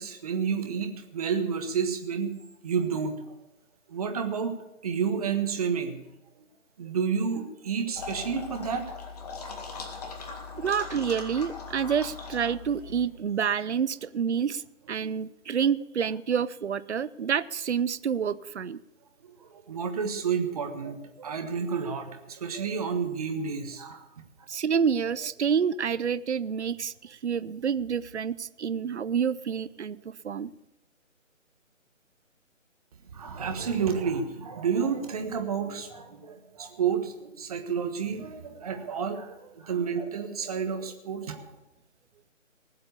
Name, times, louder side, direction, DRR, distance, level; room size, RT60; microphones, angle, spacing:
voice 1, 0.0-2.4 2.6-3.2 3.9-6.0 6.8-8.9 9.4-9.5 10.0-10.6 15.0-15.1 19.2-24.1 33.1-41.4, right 6 dB, 30° right, 5 dB, 1.4 m, -30 dB
sound 1, 8.0-13.1, left 4 dB, 30° left, 1.9 m, -40 dB
voice 2, 10.6-18.8 24.5-30.5, right 7 dB, 60° right, 17 dB, 0.7 m, -28 dB
19.0 x 7.8 x 6.9 m, 0.91 s
figure-of-eight pair, 160°, 39 cm